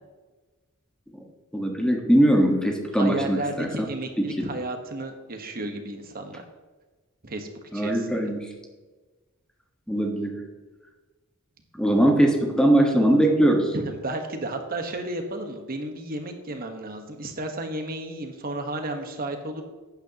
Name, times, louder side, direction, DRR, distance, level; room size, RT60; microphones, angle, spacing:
voice 1, 1.5-3.9 4.4-4.5 7.7-8.5 9.9-10.5 11.7-13.7, right 1 dB, 5° left, 1 dB, 1.4 m, -21 dB
voice 2, 2.9-6.4 7.2-7.5 7.7-8.2 13.7-19.6, right 2 dB, 45° right, 5 dB, 1.3 m, -33 dB
11.5 x 9.4 x 2.9 m, 1.3 s
head